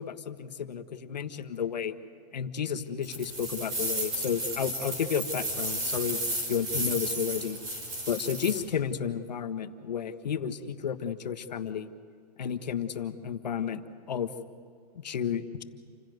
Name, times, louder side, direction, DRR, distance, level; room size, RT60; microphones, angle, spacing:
voice 1, 0.0-1.9 2.3-6.2 6.5-7.6 8.1-11.9 12.4-13.8 14.1-14.3 14.9-15.6, left 8 dB, 85° left, 9 dB, 1.5 m, -32 dB
sound 1, 3.0-8.6, right 1 dB, 20° right, 4.9 m, -33 dB
28.5 x 16.0 x 8.0 m, 2.2 s
hypercardioid pair, 175°, 21 cm